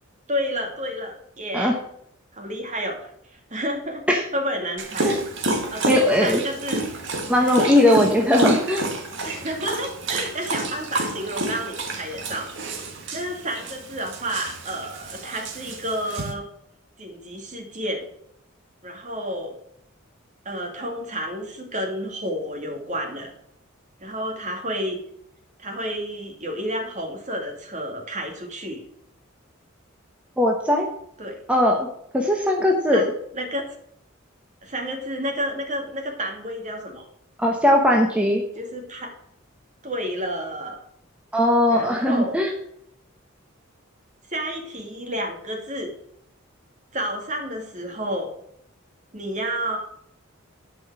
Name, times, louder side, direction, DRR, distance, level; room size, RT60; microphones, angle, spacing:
voice 1, 0.3-1.7 2.3-4.0 4.3-5.1 5.7-6.9 9.2-12.5 13.1-16.5 17.0-18.0 18.8-19.5 20.4-23.3 24.0-25.0 25.6-28.8 31.2-31.4 32.9-33.1 33.3-33.7 34.6-37.0 38.5-39.1 39.8-40.8 41.7-42.5 44.3-45.9 46.9-48.3 49.1-49.8, equal, 35° right, 2 dB, 2.3 m, -30 dB
Dog, 4.8-16.3, right 2 dB, 60° right, 1.8 m, -29 dB
voice 2, 5.9-6.4 7.3-8.9 30.4-30.9 31.5-31.9 32.1-33.0 37.4-38.4 41.3-42.5, left 1 dB, 5° right, 0 dB, 1.1 m, -19 dB
12.0 x 5.4 x 6.1 m, 0.74 s
head